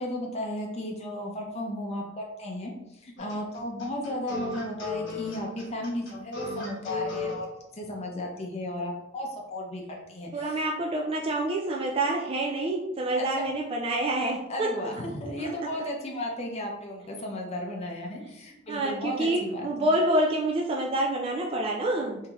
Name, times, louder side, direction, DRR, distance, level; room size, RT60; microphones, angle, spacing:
voice 1, 0.0-2.7 3.0-7.5 7.7-10.6 13.2-13.4 14.5-19.9, left 1 dB, 30° left, -1 dB, 0.6 m, -34 dB
sound 1, 3.2-7.4, left 4 dB, 65° left, 0.9 m, -35 dB
voice 2, 10.3-14.9 15.4-15.7 18.7-22.2, right 1 dB, 30° right, 0 dB, 0.3 m, -27 dB
3.5 x 2.7 x 2.9 m, 0.87 s
head